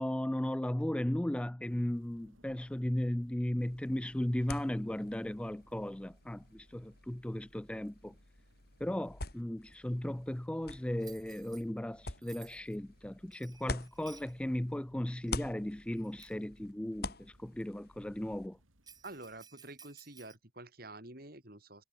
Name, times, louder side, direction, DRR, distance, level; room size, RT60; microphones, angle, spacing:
voice 1, 0.0-8.1 8.8-18.6, left 1 dB, 5° left, 0.3 m, -36 dB
sound 1, 1.6-19.4, right 1 dB, 85° right, 4.8 m, -68 dB
sound 2, 3.6-14.8 15.1-18.5, left 3 dB, 50° left, 3.1 m, -47 dB
Bell, 11.0-11.6 12.2-12.8 13.3-14.3 15.3-15.4 16.0-16.4 18.8-20.4, right 7 dB, 20° right, 6.2 m, -56 dB
voice 2, 19.0-21.8, right 2 dB, 50° right, 4.3 m, -48 dB
head